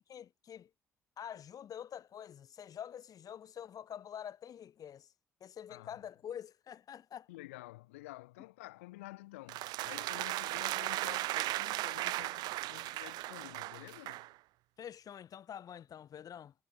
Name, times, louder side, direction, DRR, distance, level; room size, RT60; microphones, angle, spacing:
voice 1, 0.1-0.7 1.2-5.1 5.4-7.3 14.8-16.5, left 9 dB, 55° left, 5.6 m, -46 dB
voice 2, 5.7-6.0 7.3-14.2, left 20 dB, 85° left, 3.2 m, -50 dB
sound 1, 9.5-14.3, right 18 dB, 70° right, 0.6 m, -37 dB
hypercardioid pair, 50°, 7 cm